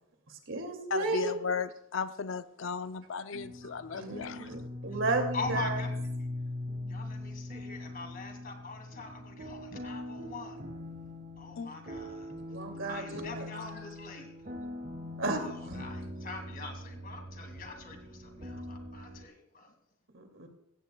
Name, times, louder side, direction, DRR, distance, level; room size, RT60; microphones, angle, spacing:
voice 1, 0.3-1.3 3.6-5.8 12.5-13.5 15.2-15.8 20.1-20.5, right 3 dB, 90° right, 3 dB, 2.5 m, -34 dB
voice 2, 0.9-4.5 11.6-11.7, left 5 dB, 85° left, 11 dB, 0.6 m, -35 dB
sound 1, 3.3-19.2, left 1 dB, 45° right, 1.8 m, -41 dB
voice 3, 5.3-5.9 6.9-10.7 11.4-14.4 15.4-19.7, left 3 dB, 50° left, 5 dB, 2.2 m, -43 dB
15.5 x 15.5 x 2.3 m, 0.80 s
head